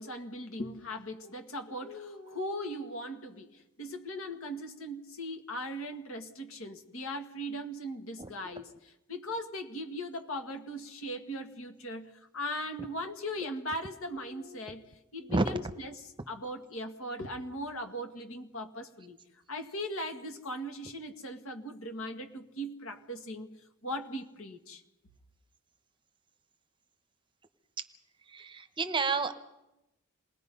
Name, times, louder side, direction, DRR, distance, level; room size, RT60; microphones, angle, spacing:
voice 1, 0.0-8.7 9.1-14.8 15.1-16.0 16.3-19.2 19.5-23.6 23.8-24.8, equal, 65° left, 6 dB, 2.0 m, -39 dB
voice 2, 28.3-29.3, right 3 dB, 20° right, 9 dB, 1.0 m, -30 dB
27.5 x 20.5 x 5.5 m, 0.95 s
head